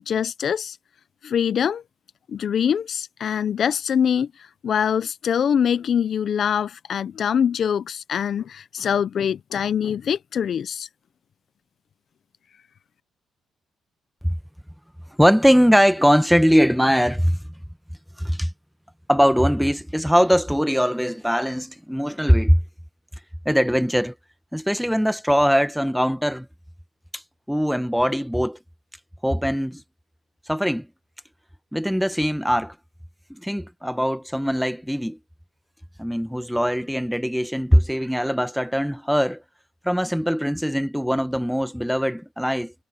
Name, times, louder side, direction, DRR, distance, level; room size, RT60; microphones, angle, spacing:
voice 1, 0.1-0.8 1.2-1.8 2.3-10.9, left 8 dB, 55° left, 0.7 m, -24 dB
voice 2, 15.2-17.4 18.2-18.5 19.1-22.6 23.4-24.1 24.5-26.5 27.1-27.2 27.5-28.6 29.2-29.8 30.5-30.9 31.7-32.7 33.3-35.2 36.0-39.4 39.8-42.7, equal, ahead, 1.3 m, -21 dB
cardioid pair, 90°, 0 cm